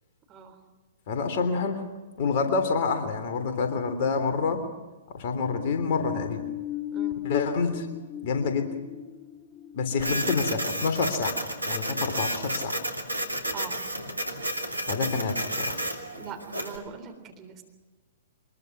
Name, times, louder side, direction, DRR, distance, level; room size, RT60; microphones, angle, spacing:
voice 1, 0.3-0.6 6.9-7.2 10.0-10.5 13.4-13.8 16.1-17.6, right 6 dB, 25° right, 5 dB, 3.6 m, -42 dB
voice 2, 1.1-1.9 2.2-4.6 5.1-6.4 7.2-7.9 8.2-8.7 9.7-11.4 11.7-12.8 14.9-15.8, left 4 dB, 45° left, 7 dB, 3.4 m, -27 dB
sound 1, 5.4-11.6 12.0-12.1, left 13 dB, 20° left, 1.1 m, -37 dB
Printer, 10.0-16.8, right 1 dB, 90° right, 2.8 m, -31 dB
23.5 x 21.5 x 6.0 m, 1.2 s
figure-of-eight pair, 110°, 0 cm